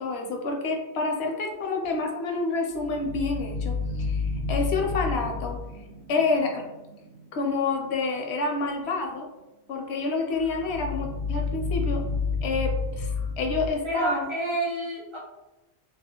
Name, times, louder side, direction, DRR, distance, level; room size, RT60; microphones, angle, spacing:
voice 1, 0.0-5.6 6.1-6.6 7.3-9.3 9.7-12.0 12.4-14.3, left 3 dB, 75° left, 2 dB, 0.8 m, -28 dB
sound 1, 2.7-7.9 10.4-13.7, left 4 dB, 85° right, 0.9 m, -31 dB
voice 2, 13.8-15.2, right 2 dB, 40° right, -3 dB, 0.4 m, -29 dB
2.4 x 2.3 x 2.7 m, 1.0 s
omnidirectional pair, 1.1 m